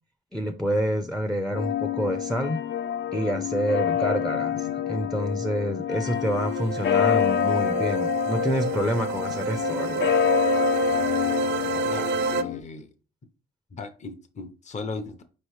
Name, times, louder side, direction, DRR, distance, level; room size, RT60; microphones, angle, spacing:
voice 1, 0.3-2.6 3.1-10.2, equal, ahead, 0.5 m, -28 dB
sound 1, 1.5-12.6, left 9 dB, 65° left, 0.5 m, -27 dB
sound 2, 6.1-12.4, right 4 dB, 65° right, 0.5 m, -29 dB
voice 2, 11.3-12.9 13.7-15.2, left 4 dB, 35° left, 0.7 m, -38 dB
5.0 x 3.0 x 3.1 m
cardioid pair, 90°, 20 cm